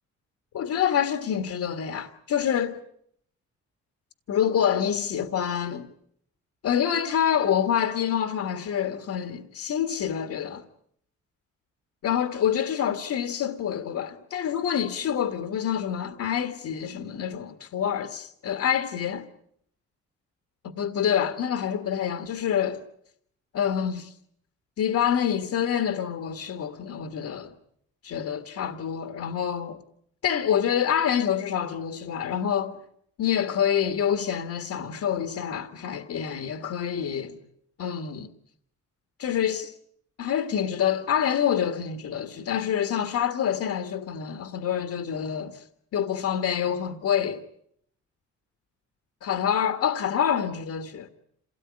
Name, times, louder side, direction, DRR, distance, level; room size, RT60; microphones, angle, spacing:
voice 1, 0.5-2.8 4.3-5.9 6.6-10.6 12.0-19.3 20.8-22.8 23.5-24.1 24.8-27.5 28.0-29.8 30.2-32.8 33.2-37.4 37.8-38.3 39.2-39.7 40.2-45.6 45.9-47.4 49.2-51.1, left 9 dB, 65° left, 1.8 m, -27 dB
27.5 x 18.0 x 9.8 m
cardioid pair, 90°, 30 cm